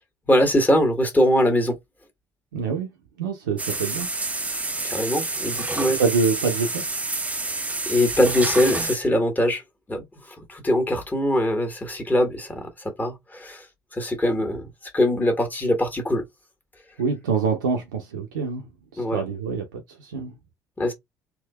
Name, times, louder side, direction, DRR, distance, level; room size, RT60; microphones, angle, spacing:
voice 1, 0.3-1.8 4.8-6.0 7.9-9.6 9.9-10.0 10.5-12.7 13.0-13.6 13.9-14.7 14.9-16.2 19.0-19.2 20.8-20.9, left 1 dB, 15° left, 1.5 m, -22 dB
voice 2, 2.5-2.9 3.2-4.1 5.8-6.8 17.0-18.6 18.9-20.3, right 5 dB, 75° right, 0.7 m, -25 dB
sound 1, 3.6-9.0, right 2 dB, 15° right, 0.7 m, -28 dB
3.6 x 2.7 x 2.3 m
figure-of-eight pair, 55°, 10 cm